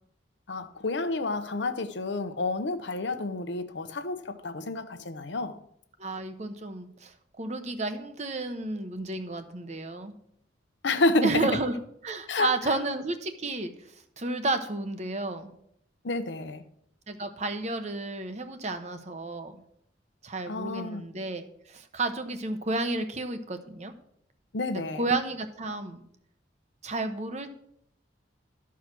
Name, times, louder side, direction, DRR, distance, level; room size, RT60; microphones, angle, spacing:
voice 1, 0.5-5.6 10.8-11.5 12.3-12.5 16.0-16.6 20.5-21.0 24.5-25.0, left 2 dB, 70° left, 0.8 m, -29 dB
voice 2, 6.0-10.1 11.2-11.7 12.0-13.7 14.2-15.5 17.1-19.6 20.2-23.9 24.9-26.0 26.8-27.6, right 2 dB, 35° right, 0.9 m, -32 dB
13.0 x 4.7 x 6.1 m
head